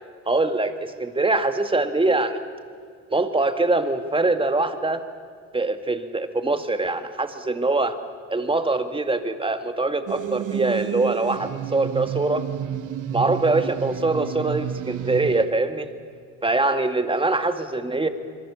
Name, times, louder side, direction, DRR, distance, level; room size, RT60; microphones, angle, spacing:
voice 1, 0.3-2.4 3.1-5.0 5.5-8.0 8.3-12.4 13.1-15.9 16.4-18.1, right 2 dB, 15° right, 8 dB, 2.0 m, -23 dB
sound 1, 10.1-15.5, right 9 dB, 85° right, 1.3 m, -30 dB
26.5 x 23.0 x 7.2 m, 2.1 s
cardioid pair, 90°, 30 cm